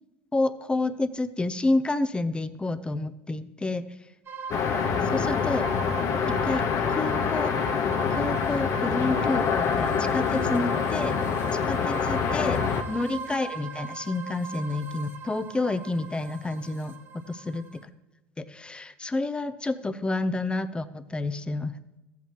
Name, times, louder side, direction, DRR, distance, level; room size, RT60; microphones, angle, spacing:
voice 1, 0.3-3.8 5.1-5.7 6.3-6.6 6.9-7.5 8.1-11.2 11.6-17.6 18.4-21.7, left 2 dB, 15° left, 11 dB, 0.7 m, -29 dB
sound 1, 4.3-17.8, right 5 dB, 40° right, 1.7 m, -38 dB
sound 2, 4.5-12.8, left 6 dB, 55° left, 1.1 m, -26 dB
14.5 x 8.3 x 3.1 m, 1.0 s
supercardioid pair, 95°, 7 cm